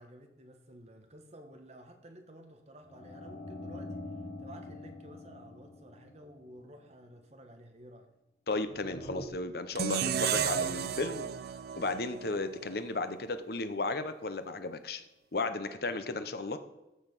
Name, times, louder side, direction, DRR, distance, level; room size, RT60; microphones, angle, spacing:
voice 1, 0.0-4.0 4.4-8.1, right 1 dB, 35° right, 5 dB, 1.3 m, -52 dB
sound 1, 2.8-6.8 8.6-9.3, left 1 dB, 30° left, 1.2 m, -45 dB
voice 2, 8.5-11.3 11.7-15.0 15.3-16.6, left 3 dB, 55° left, 10 dB, 0.8 m, -34 dB
sound 2, 9.7-12.9, right 8 dB, 55° right, 0.4 m, -33 dB
14.0 x 5.1 x 5.3 m, 1.0 s
head